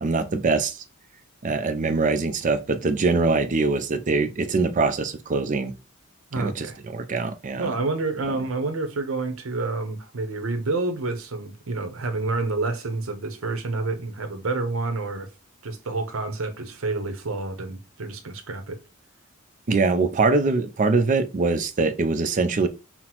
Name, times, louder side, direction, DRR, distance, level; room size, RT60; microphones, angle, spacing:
voice 1, 0.0-0.8 1.4-5.7 6.4-6.7 6.9-7.7 19.7-22.7, right 3 dB, 40° right, 0.4 m, -23 dB
voice 2, 6.3-6.8 7.6-15.3 15.6-18.8, right 3 dB, 70° right, 0.7 m, -28 dB
5.7 x 2.0 x 2.9 m
head